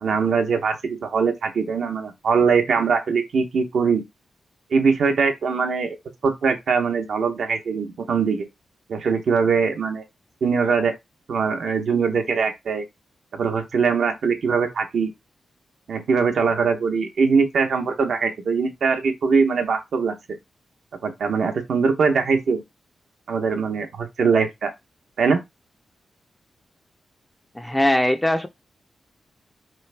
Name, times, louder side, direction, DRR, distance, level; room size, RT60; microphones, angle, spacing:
voice 1, 0.0-4.0 4.7-6.0 6.2-8.5 8.9-10.0 10.4-10.9 11.3-12.8 13.3-15.1 15.9-20.1 21.0-22.6 23.3-24.7 25.2-25.4, right 5 dB, 75° right, 0.8 m, -22 dB
voice 2, 27.6-28.5, left 1 dB, 10° left, 0.4 m, -20 dB
3.2 x 2.5 x 3.3 m
cardioid pair, 65°, 0 cm